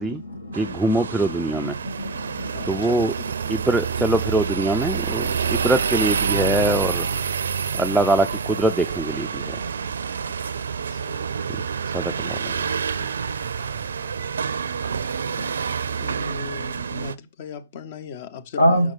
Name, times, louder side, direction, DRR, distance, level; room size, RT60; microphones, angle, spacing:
voice 1, 0.0-2.9 4.0-4.2 6.3-7.0 9.3-10.3 18.6-18.9, equal, 80° left, 2.0 m, -29 dB
voice 2, 0.5-1.8 2.6-3.1 3.5-7.1 7.7-9.6 11.9-12.5, right 2 dB, 5° right, 0.4 m, -23 dB
sound 1, 0.5-17.1, right 6 dB, 70° right, 0.5 m, -28 dB
voice 3, 2.4-3.7 10.9-11.3 13.0-13.2 15.2-15.7 16.0-18.9, left 5 dB, 45° left, 1.0 m, -38 dB
6.3 x 5.9 x 3.9 m
figure-of-eight pair, 120°, 0 cm